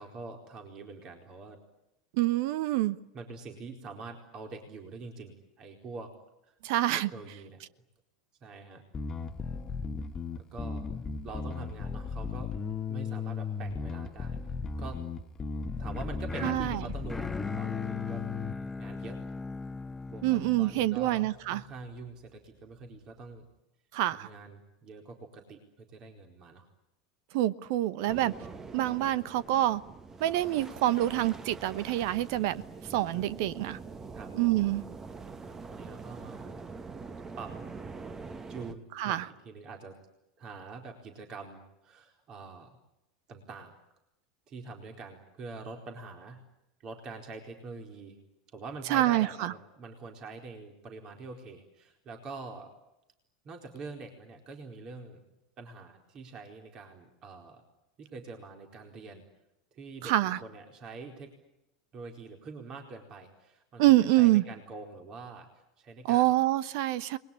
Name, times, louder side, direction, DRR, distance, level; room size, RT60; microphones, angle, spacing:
voice 1, 0.0-1.6 3.1-6.1 6.4-6.5 6.9-7.6 8.4-8.8 10.4-11.0 11.2-12.6 12.9-15.0 15.8-18.2 18.8-19.2 20.1-23.4 24.1-26.7 28.4-28.6 28.9-29.0 33.1-33.3 34.1-34.3 35.7-36.6 37.4-37.6 38.5-40.0 40.4-42.7 43.3-43.8 44.5-46.4 46.8-48.2 48.5-52.7 53.4-55.2 55.6-57.6 58.0-59.2 59.7-61.3 61.9-63.8 64.1-66.3, right 3 dB, 40° right, 4.4 m, -45 dB
voice 2, 2.1-3.0 6.6-7.1 16.4-16.8 20.2-21.6 23.9-24.3 27.3-28.3 28.7-29.8 30.2-32.6 32.9-33.8 34.3-34.8 39.0-39.3 48.9-49.5 60.0-60.4 63.8-64.4 66.0-67.2, right 15 dB, 55° right, 1.0 m, -26 dB
Bass guitar, 8.9-18.5, left 5 dB, 25° left, 1.4 m, -36 dB
sound 1, 15.9-22.0, left 3 dB, 10° left, 0.9 m, -40 dB
sound 2, 28.1-38.7, right 4 dB, 20° right, 1.6 m, -44 dB
29.0 x 21.5 x 8.7 m
figure-of-eight pair, 80°, 2 cm